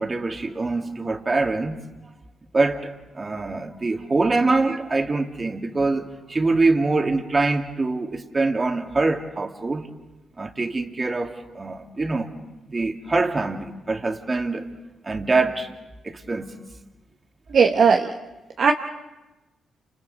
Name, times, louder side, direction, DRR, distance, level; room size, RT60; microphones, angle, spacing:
voice 1, 0.0-1.8 2.5-9.9 10.4-12.3 12.7-14.7 15.0-15.7 16.0-16.5, right 3 dB, 35° right, 2.3 m, -24 dB
voice 2, 17.5-18.1 18.6-18.7, right 5 dB, 60° right, 1.0 m, -16 dB
29.5 x 27.5 x 4.1 m
hypercardioid pair, 45°, 0 cm